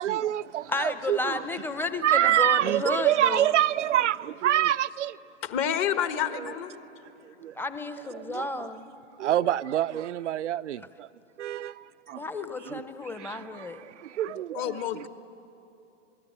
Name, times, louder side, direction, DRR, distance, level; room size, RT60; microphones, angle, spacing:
voice 1, 0.0-1.4 2.0-5.2 6.4-6.5 7.2-7.6 8.1-8.7 9.2-11.1 11.4-11.8 12.1-12.2 12.7-12.8 13.1-15.1, right 12 dB, 75° right, 0.6 m, -26 dB
voice 2, 0.7-3.5 7.6-8.9 12.1-13.8, left 3 dB, 5° left, 0.9 m, -32 dB
voice 3, 5.4-6.8 14.5-15.1, left 9 dB, 35° left, 1.5 m, -28 dB
26.5 x 19.5 x 8.7 m
hypercardioid pair, 120°, 36 cm